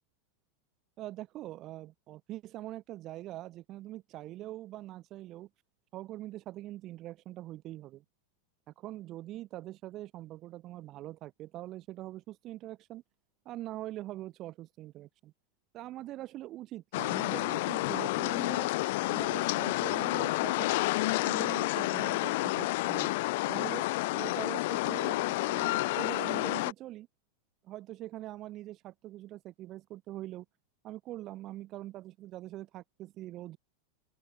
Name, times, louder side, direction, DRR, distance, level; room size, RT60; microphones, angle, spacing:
voice 1, 1.0-5.5 5.9-8.0 8.7-13.0 13.4-15.3 15.7-18.7 19.1-23.1 23.5-27.1 27.6-30.4 30.8-33.6, right 15 dB, 30° right, 6.2 m, -43 dB
sound 1, 16.9-26.7, left 21 dB, 55° left, 1.1 m, -30 dB
open air
supercardioid pair, 165°, 0 cm